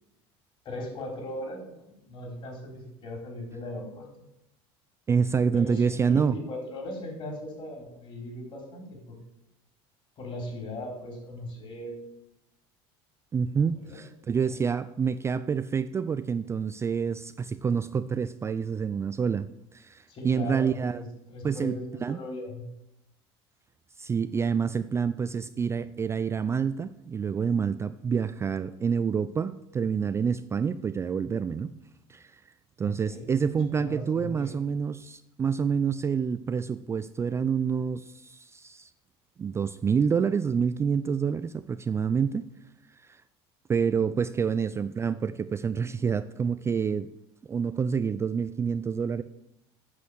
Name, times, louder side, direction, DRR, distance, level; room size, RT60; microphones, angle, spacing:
voice 1, 0.6-4.1 5.5-9.2 10.2-12.0 13.8-14.0 14.4-14.7 20.1-22.7 32.8-33.3 33.7-34.6, left 1 dB, 40° left, 2 dB, 3.9 m, -39 dB
voice 2, 5.1-6.4 13.3-19.5 19.7-21.0 21.4-21.8 22.0-22.2 24.0-31.7 32.1-32.4 32.8-38.9 39.4-42.5 43.0-43.2 43.7-47.1 47.5-49.2, right 6 dB, 20° right, 12 dB, 0.3 m, -27 dB
8.4 x 6.3 x 7.8 m, 0.85 s
supercardioid pair, 120°, 13 cm